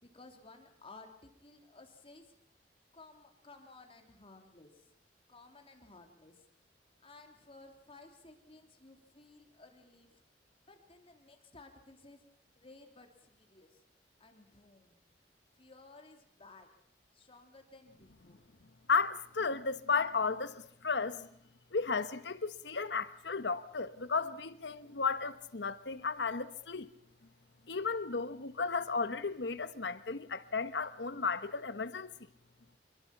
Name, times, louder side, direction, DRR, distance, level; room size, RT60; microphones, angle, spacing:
voice 1, 0.0-2.4 2.9-4.9 5.3-6.4 7.0-10.2 10.7-12.2 12.5-13.8 14.2-15.0 15.5-16.7 17.1-18.4, left 3 dB, 35° left, 3.1 m, -56 dB
voice 2, 18.9-21.3 21.7-26.9 27.7-32.1, left 4 dB, 70° left, 1.2 m, -34 dB
26.0 x 22.0 x 5.9 m
head